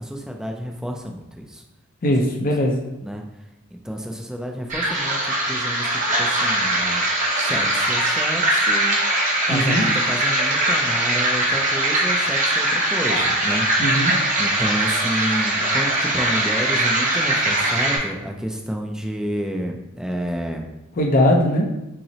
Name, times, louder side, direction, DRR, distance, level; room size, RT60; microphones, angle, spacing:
voice 1, 0.0-1.6 2.1-2.2 3.0-3.2 3.7-7.0 7.4-9.0 9.5-13.7 14.4-20.7, equal, 5° right, 2 dB, 0.3 m, -30 dB
voice 2, 2.0-2.8 9.5-9.9 13.8-14.1 21.0-21.7, equal, 40° left, 1 dB, 0.5 m, -19 dB
sound 1, 4.7-18.0, right 1 dB, 40° right, 0.8 m, -21 dB
5.5 x 2.0 x 2.7 m, 0.95 s
head